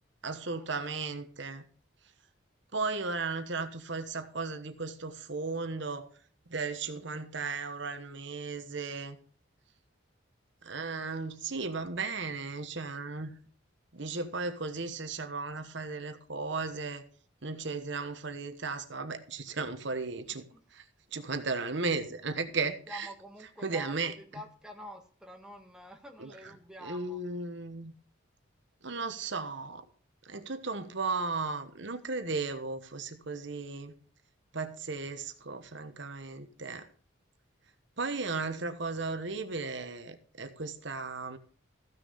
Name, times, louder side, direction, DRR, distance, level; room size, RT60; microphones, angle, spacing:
voice 1, 0.2-1.6 2.7-6.1 6.5-9.2 10.6-13.3 13.9-17.0 17.4-20.4 20.7-20.8 21.1-23.1 23.6-24.1 26.2-26.5 26.8-27.9 28.8-29.8 30.2-33.9 34.5-36.9 38.0-41.4, right 4 dB, 60° right, 1.1 m, -35 dB
voice 2, 22.5-27.2, equal, 5° right, 1.6 m, -47 dB
15.0 x 6.8 x 5.5 m
head